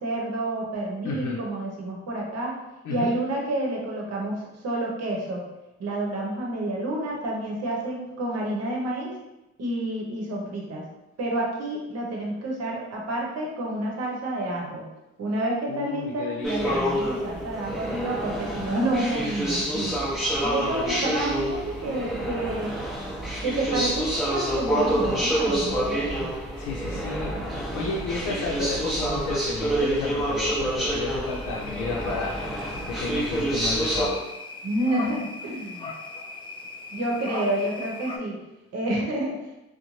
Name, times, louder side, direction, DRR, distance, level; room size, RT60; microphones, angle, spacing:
voice 1, 0.0-2.5 2.9-5.4 5.8-9.1 9.6-10.9 11.2-14.8 15.2-20.0 20.4-22.7 23.4-26.3 34.6-35.9 36.9-38.4 38.7-39.5, right 1 dB, 55° right, -2 dB, 0.9 m, -29 dB
voice 2, 1.0-1.4 2.8-3.1 15.7-16.8 20.2-21.2 26.6-27.4 27.7-34.2, left 3 dB, 85° left, -4 dB, 0.6 m, -32 dB
sound 1, 16.4-34.1, right 1 dB, ahead, 0.7 m, -27 dB
sound 2, 31.2-38.2, left 2 dB, 20° left, 0.3 m, -39 dB
2.6 x 2.1 x 3.0 m, 0.98 s
cardioid pair, 90°, 30 cm